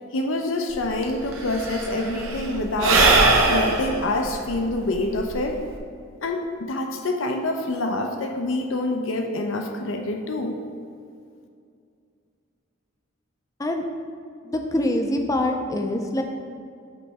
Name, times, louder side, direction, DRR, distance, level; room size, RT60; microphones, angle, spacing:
voice 1, 0.1-3.1 3.5-5.6 6.2-10.6, left 2 dB, 75° left, 4 dB, 0.6 m, -26 dB
Sigh / Breathing, 0.7-0.8 1.0-5.8, right 3 dB, 85° right, 0.8 m, -21 dB
voice 2, 14.4-16.2, left 1 dB, 15° left, 4 dB, 0.4 m, -24 dB
8.2 x 3.1 x 4.7 m, 2.3 s
head